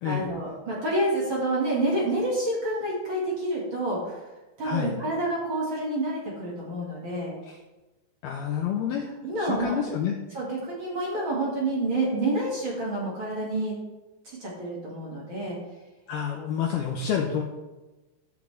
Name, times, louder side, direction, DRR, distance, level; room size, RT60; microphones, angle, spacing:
voice 1, 0.0-4.2 4.6-7.3 9.2-9.7 10.3-13.7 14.2-15.6, right 1 dB, 35° right, -5 dB, 2.1 m, -28 dB
voice 2, 4.6-5.0 7.5-7.6 8.2-9.1 9.4-10.2 16.1-17.4, left 8 dB, 85° left, 1 dB, 2.2 m, -28 dB
15.5 x 6.4 x 3.5 m, 1.1 s
omnidirectional pair, 5.6 m